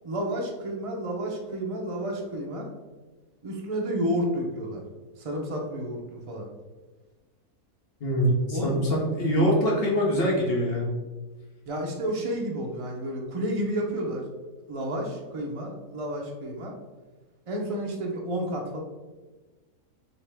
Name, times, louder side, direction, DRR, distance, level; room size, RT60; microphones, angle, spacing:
voice 1, 0.0-2.7 3.4-4.8 5.2-6.5 8.5-8.8 11.7-14.2 14.7-16.8 17.5-18.8, equal, 60° right, 0 dB, 0.3 m, -31 dB
voice 2, 8.0-10.9, equal, 45° left, -3 dB, 1.0 m, -24 dB
6.5 x 2.2 x 3.4 m, 1.3 s
omnidirectional pair, 1.7 m